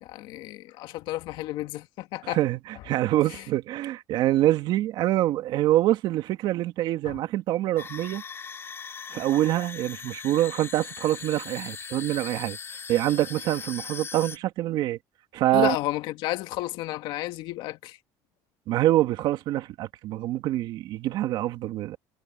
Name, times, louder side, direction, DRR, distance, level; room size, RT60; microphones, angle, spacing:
voice 1, 0.0-2.4 3.3-3.4 7.1-7.2 15.5-18.0, left 16 dB, 70° left, 2.0 m, -32 dB
voice 2, 2.2-8.2 9.1-12.6 12.9-15.0 15.3-15.8 18.7-22.0, right 14 dB, 60° right, 2.1 m, -25 dB
sound 1, 7.8-14.4, left 6 dB, 30° left, 6.5 m, -39 dB
cardioid pair, 130°, 9 cm